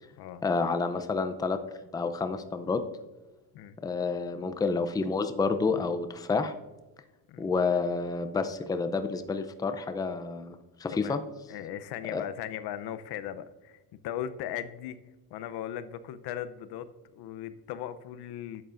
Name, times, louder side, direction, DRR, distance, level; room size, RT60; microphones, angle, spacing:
voice 1, 0.4-1.6 1.9-2.8 3.8-6.5 7.4-11.2 12.1-12.2, left 4 dB, 10° left, 9 dB, 0.4 m, -29 dB
voice 2, 11.5-15.0 15.3-18.6, left 10 dB, 80° left, 13 dB, 0.7 m, -38 dB
11.0 x 8.0 x 2.5 m, 1.1 s
cardioid pair, 135°, 38 cm